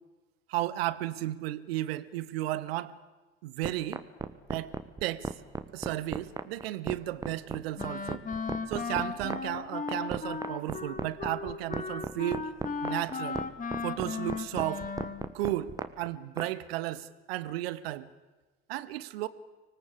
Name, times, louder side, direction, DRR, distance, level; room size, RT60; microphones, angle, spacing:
voice 1, 0.5-2.9 3.4-4.0 4.5-4.7 5.0-5.3 5.7-8.2 8.7-12.5 12.8-13.4 13.8-14.9 15.3-18.1 18.7-19.3, right 15 dB, 65° right, 1.2 m, -34 dB
sound 1, 3.6-16.5, right 3 dB, 10° right, 1.3 m, -35 dB
Wind instrument woodwind instrument, 7.8-15.3, left 4 dB, 25° left, 2.0 m, -36 dB
25.0 x 20.0 x 8.5 m
figure-of-eight pair, 60°, 33 cm